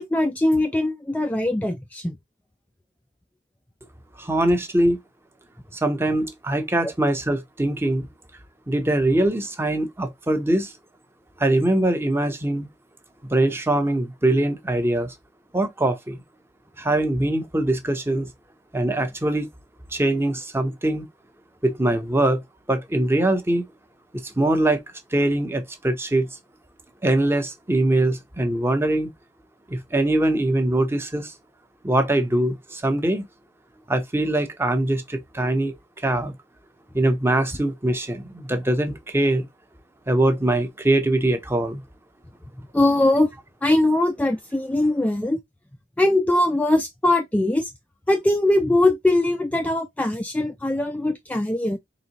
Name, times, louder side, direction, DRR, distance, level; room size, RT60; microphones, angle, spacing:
voice 1, 0.0-2.2 6.8-6.9 42.7-43.3 43.6-45.4 46.0-47.7 48.1-51.8, left 1 dB, 10° left, 0.3 m, -21 dB
voice 2, 4.2-5.0 5.7-8.1 8.7-10.7 11.4-12.7 13.3-15.1 15.5-16.2 16.8-18.3 18.7-19.5 19.9-21.0 21.6-22.4 22.7-23.6 24.2-24.8 25.1-26.3 27.0-29.1 29.7-31.3 31.8-33.3 33.9-35.7 36.0-36.3 36.9-39.5 40.1-41.8, right 1 dB, 15° right, 0.7 m, -22 dB
4.0 x 3.4 x 2.9 m
head